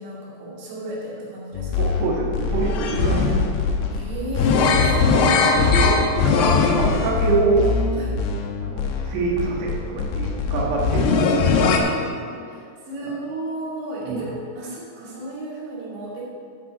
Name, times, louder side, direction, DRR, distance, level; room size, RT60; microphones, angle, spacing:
voice 1, 0.0-1.9 3.9-5.7 7.9-8.1 10.8-11.9 12.5-16.2, right 1 dB, 90° right, -6 dB, 4.7 m, -34 dB
sound 1, 1.5-11.8, left 4 dB, 80° left, 3.0 m, -21 dB
voice 2, 1.8-3.5 5.1-7.7 8.6-12.1 14.1-14.3, right 3 dB, 55° right, -3 dB, 2.1 m, -26 dB
12.0 x 7.8 x 4.8 m, 2.2 s
omnidirectional pair, 4.8 m